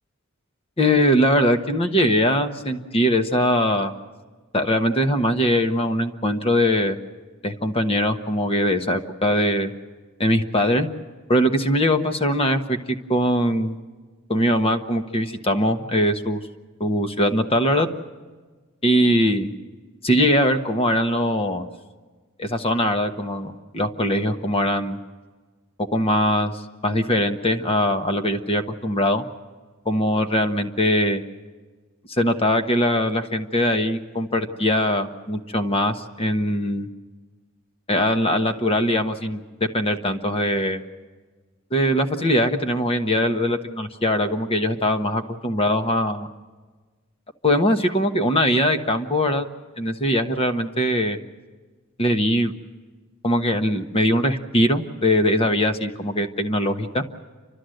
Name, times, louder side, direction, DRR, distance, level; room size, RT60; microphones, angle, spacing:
voice 1, 0.8-3.9 4.5-7.0 7.4-9.7 10.2-10.9 11.3-12.8 13.1-13.8 14.3-16.4 16.8-17.9 18.8-19.5 20.0-21.6 22.4-25.0 25.9-29.2 29.8-31.2 32.1-36.9 37.9-40.8 41.7-46.3 47.4-49.5 49.8-51.2 52.0-52.5 53.2-57.0, equal, 30° left, 7 dB, 1.1 m, -21 dB
30.0 x 13.0 x 7.8 m, 1.4 s
head